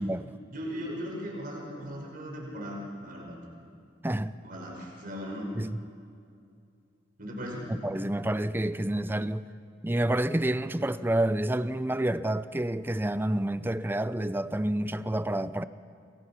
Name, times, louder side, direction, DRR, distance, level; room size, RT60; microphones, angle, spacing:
voice 1, 0.2-3.4 4.4-5.5 7.2-7.7, equal, 50° right, 5.7 m, -38 dB
voice 2, 7.7-9.5 9.8-15.6, right 1 dB, 10° right, 0.6 m, -29 dB
29.0 x 23.0 x 5.9 m
head